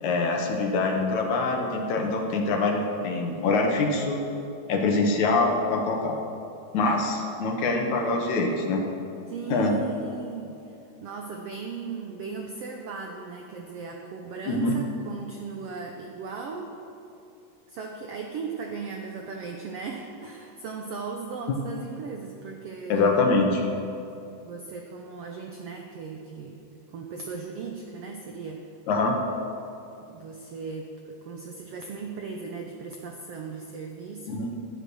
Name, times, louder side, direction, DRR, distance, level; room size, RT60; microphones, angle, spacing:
voice 1, 0.0-4.2 4.7-6.2 6.7-8.8 9.5-9.8 14.5-14.8 22.9-23.7 28.9-29.2 34.3-34.5, left 3 dB, 65° left, 2 dB, 2.4 m, -24 dB
voice 2, 9.3-10.5 11.0-16.7 17.7-23.1 24.4-28.6 30.0-34.5, right 4 dB, 80° right, 2 dB, 1.4 m, -37 dB
11.5 x 10.0 x 6.3 m, 2.7 s
omnidirectional pair, 3.8 m